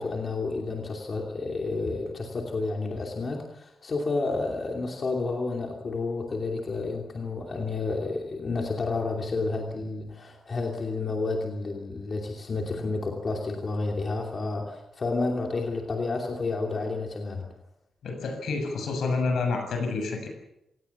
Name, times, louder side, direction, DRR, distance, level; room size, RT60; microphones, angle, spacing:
voice 1, 0.0-17.5, left 3 dB, 35° left, 1 dB, 2.8 m, -30 dB
voice 2, 18.0-20.3, left 3 dB, 70° left, 5 dB, 7.2 m, -28 dB
27.0 x 18.5 x 7.2 m, 0.85 s
wide cardioid pair, 175°, 0 cm